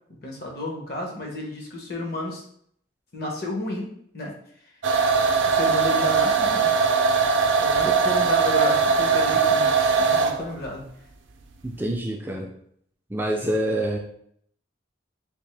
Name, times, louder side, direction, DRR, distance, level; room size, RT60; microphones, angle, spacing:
voice 1, 0.2-2.4 3.1-4.3 5.4-6.7 7.6-10.9, left 2 dB, 55° left, 0 dB, 0.8 m, -32 dB
sound 1, 4.8-10.5, right 5 dB, 80° right, 0.4 m, -20 dB
voice 2, 11.6-12.5 13.1-14.0, right 1 dB, 10° right, 0 dB, 0.3 m, -26 dB
3.5 x 2.8 x 3.2 m, 0.67 s
head